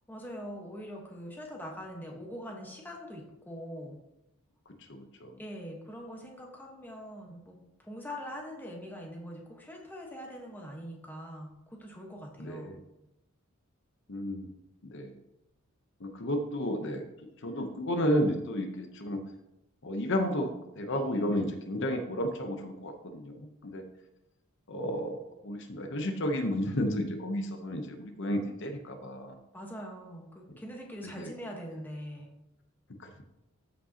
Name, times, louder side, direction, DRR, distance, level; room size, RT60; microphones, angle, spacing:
voice 1, 0.1-4.0 5.4-12.8 29.5-32.3, equal, 10° left, 0 dB, 1.2 m, -43 dB
voice 2, 4.9-5.4 12.4-12.8 14.1-14.5 14.8-15.1 16.0-17.0 17.4-19.2 19.8-23.8 24.7-29.4 31.0-31.3 33.0-33.2, equal, 55° left, 5 dB, 0.8 m, -32 dB
13.5 x 5.2 x 2.8 m, 0.88 s
head